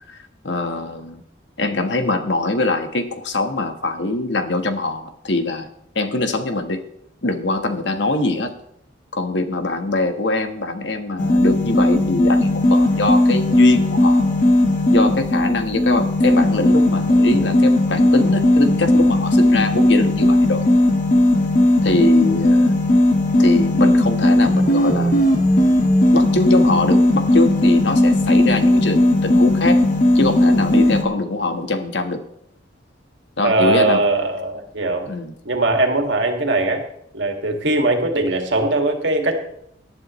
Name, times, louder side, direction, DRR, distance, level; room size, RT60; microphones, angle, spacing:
voice 1, 0.4-1.2 1.6-5.7 5.9-6.8 7.2-8.5 9.1-14.3 14.9-20.7 21.8-22.7 23.4-25.1 26.1-29.8 30.1-32.2 33.4-34.0 35.1-35.3, left 2 dB, 70° left, 7 dB, 1.4 m, -22 dB
sound 1, 11.2-31.0, left 1 dB, 40° left, 1.8 m, -16 dB
voice 2, 33.4-35.1 35.5-36.8 37.1-39.3, right 2 dB, 75° right, 3 dB, 2.1 m, -20 dB
18.5 x 11.5 x 3.2 m, 0.72 s
head